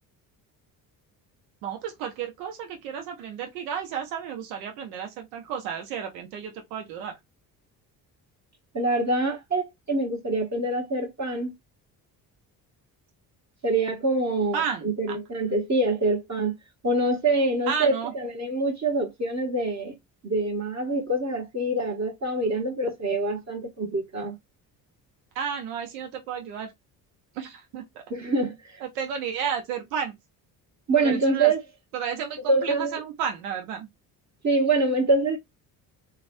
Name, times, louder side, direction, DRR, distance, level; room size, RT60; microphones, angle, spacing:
voice 1, 1.6-7.2 14.5-15.2 17.7-18.1 25.3-26.7 27.3-28.0 28.8-30.1 30.9-31.5 31.9-33.9, right 7 dB, 90° right, 0.8 m, -32 dB
voice 2, 8.7-11.5 13.6-16.5 16.8-19.9 20.2-24.3 28.1-28.8 30.9-31.6 32.5-33.0 34.4-35.4, right 2 dB, 35° right, 1.3 m, -25 dB
3.1 x 2.3 x 2.6 m
hypercardioid pair, 55°, 47 cm